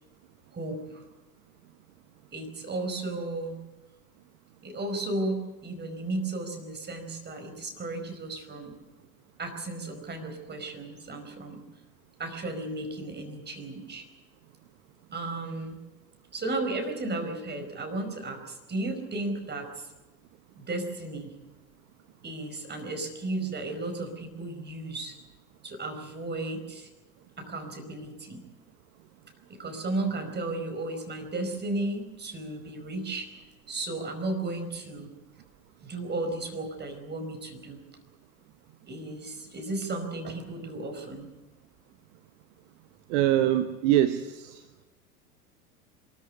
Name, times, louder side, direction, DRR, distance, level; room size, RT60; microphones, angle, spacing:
voice 1, 0.5-1.0 2.3-3.6 4.6-8.8 9.4-11.6 12.2-14.0 15.1-15.8 16.3-19.9 20.6-21.3 22.2-25.2 25.6-26.9 27.4-28.4 29.5-33.3 33.7-35.1 35.8-37.8 38.9-41.3, right 2 dB, 20° right, 5 dB, 5.0 m, -34 dB
voice 2, 43.1-44.6, right 12 dB, 50° right, 11 dB, 1.2 m, -24 dB
23.0 x 14.0 x 9.8 m, 1.1 s
figure-of-eight pair, 80°, 45 cm